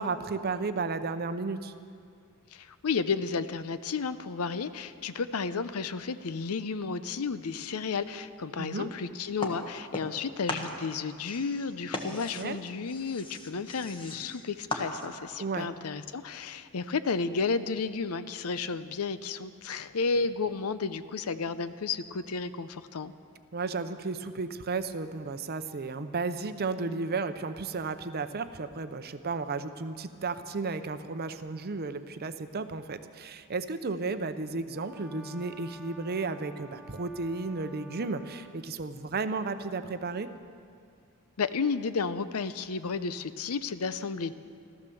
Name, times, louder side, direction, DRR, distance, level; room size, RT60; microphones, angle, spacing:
voice 1, 0.0-1.7 8.6-8.9 12.0-12.6 15.4-15.7 23.5-40.3, right 4 dB, 45° right, 10 dB, 0.7 m, -33 dB
voice 2, 2.5-23.1 41.4-44.3, left 4 dB, 80° left, 13 dB, 0.6 m, -32 dB
sound 1, 9.4-10.2 10.5-15.3, left 2 dB, 25° left, 1.4 m, -38 dB
Brass instrument, 34.7-38.6, equal, 5° right, 0.8 m, -51 dB
14.0 x 14.0 x 7.0 m, 2.3 s
head